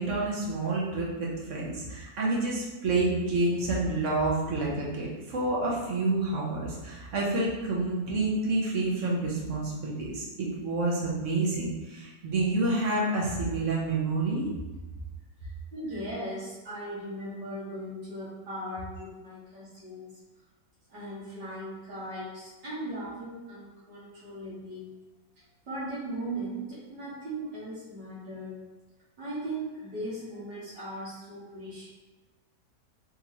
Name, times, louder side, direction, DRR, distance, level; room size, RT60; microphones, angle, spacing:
voice 1, 0.0-14.4, right 2 dB, 55° right, -4 dB, 1.0 m, -28 dB
voice 2, 15.4-20.2 20.9-24.9 25.4-28.6 29.2-31.9, right 1 dB, 75° right, -9 dB, 1.7 m, -38 dB
3.7 x 2.9 x 3.0 m, 1.2 s
omnidirectional pair, 1.9 m